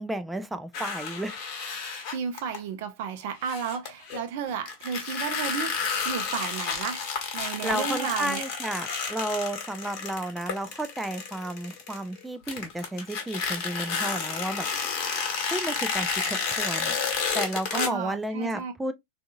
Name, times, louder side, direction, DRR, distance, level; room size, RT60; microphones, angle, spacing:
voice 1, 0.0-1.3 7.6-14.7 15.5-17.0 17.3-18.9, right 1 dB, 5° right, 0.4 m, -32 dB
sound 1, 0.7-2.6 3.4-4.2 4.7-12.2 12.5-17.9, left 5 dB, 40° left, 1.3 m, -31 dB
voice 2, 2.1-5.8 6.0-7.1 7.3-8.4 17.7-18.7, right 7 dB, 50° right, 0.7 m, -33 dB
3.6 x 2.6 x 2.3 m
figure-of-eight pair, 90°, 0 cm